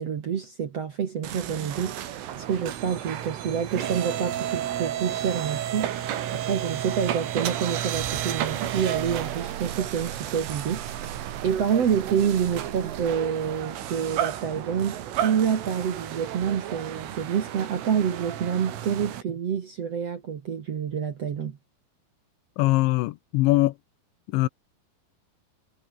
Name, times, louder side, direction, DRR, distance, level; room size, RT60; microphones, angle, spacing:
voice 1, 0.0-21.6, right 7 dB, 65° right, 1.6 m, -28 dB
Auto Shop Soundscape, 1.2-19.2, right 11 dB, 80° right, 4.9 m, -32 dB
voice 2, 22.6-23.8 24.3-24.5, left 19 dB, 80° left, 2.9 m, -22 dB
omnidirectional pair, 5.6 m